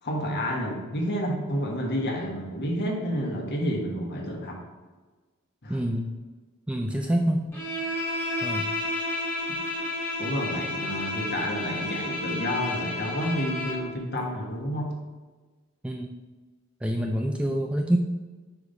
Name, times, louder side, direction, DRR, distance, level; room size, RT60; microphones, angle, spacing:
voice 1, 0.0-4.6 5.6-5.8 10.2-14.9, equal, 50° left, -1 dB, 1.3 m, -30 dB
voice 2, 5.7-6.1 6.7-7.5 8.4-8.7 15.8-16.1 16.8-18.0, right 1 dB, 5° right, 2 dB, 0.3 m, -26 dB
Bowed string instrument, 7.5-13.9, left 2 dB, 10° left, 1.4 m, -31 dB
5.1 x 4.9 x 4.0 m, 1.3 s
head